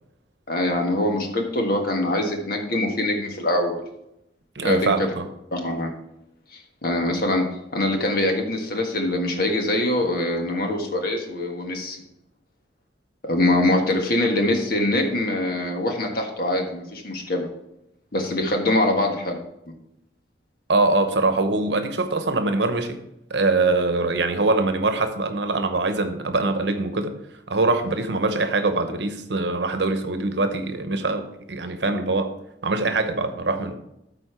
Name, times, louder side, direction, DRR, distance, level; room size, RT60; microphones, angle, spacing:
voice 1, 0.5-3.8 4.6-5.1 5.5-5.9 6.5-7.4 7.7-12.0 13.2-17.5 18.1-19.4, left 1 dB, 55° left, 3 dB, 1.5 m, -23 dB
voice 2, 4.5-5.2 20.7-23.0 23.3-27.1 27.5-32.3 32.6-33.7, right 3 dB, 70° right, 8 dB, 0.9 m, -23 dB
13.0 x 4.4 x 4.4 m, 0.82 s
head